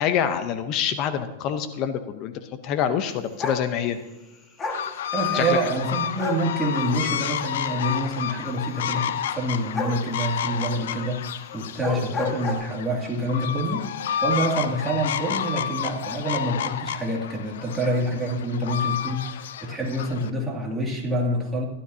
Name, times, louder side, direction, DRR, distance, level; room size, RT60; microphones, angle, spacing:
voice 1, 0.0-4.0 5.3-5.6, left 9 dB, 40° left, 10 dB, 0.8 m, -26 dB
sound 1, 3.4-3.7 4.6-4.9 6.2-6.5 9.7-10.0 11.7-12.5, left 4 dB, 20° left, 1.6 m, -29 dB
sound 2, 4.7-20.3, left 9 dB, 75° left, 0.6 m, -30 dB
voice 2, 5.1-21.7, right 1 dB, 10° right, -2 dB, 2.5 m, -27 dB
16.5 x 12.0 x 2.8 m, 1.1 s
hypercardioid pair, 140°, 0 cm